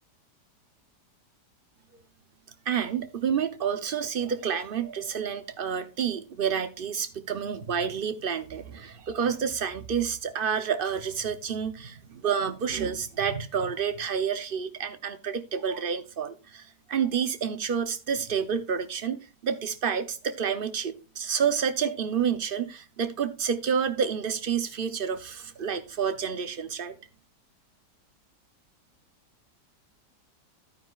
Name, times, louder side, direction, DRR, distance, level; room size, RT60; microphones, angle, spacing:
voice 1, 2.7-27.0, right 7 dB, 60° right, 0.5 m, -29 dB
12.0 x 9.1 x 2.3 m
omnidirectional pair, 1.8 m